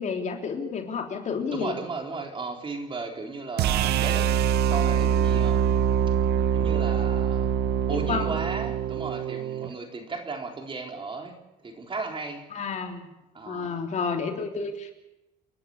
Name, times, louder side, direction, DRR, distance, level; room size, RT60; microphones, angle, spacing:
voice 1, 0.0-1.7 7.9-8.4 12.5-13.1 13.4-14.9, left 5 dB, 45° left, 3 dB, 3.4 m, -30 dB
voice 2, 1.5-4.3 4.6-5.6 6.5-7.5 7.9-11.4 11.6-12.5 13.3-13.7, right 3 dB, 30° right, 3 dB, 4.0 m, -35 dB
sound 1, 3.6-9.7, right 9 dB, 75° right, 0.8 m, -24 dB
30.0 x 11.5 x 8.6 m, 0.96 s
cardioid pair, 110°, 17 cm